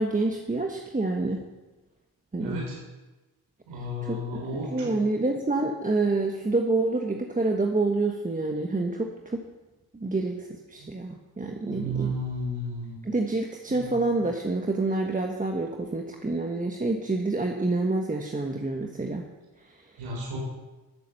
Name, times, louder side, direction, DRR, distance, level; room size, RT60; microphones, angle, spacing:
voice 1, 0.0-1.4 2.3-2.6 4.0-4.4 4.7-9.4 9.9-12.1 13.0-19.2, right 2 dB, 20° right, 2 dB, 1.3 m, -27 dB
voice 2, 2.4-2.8 3.7-4.9 10.8-10.9 11.7-13.0 13.7-14.0 20.0-20.4, equal, 85° right, -3 dB, 4.6 m, -33 dB
13.0 x 7.8 x 6.7 m, 1.1 s
supercardioid pair, 60°, 40 cm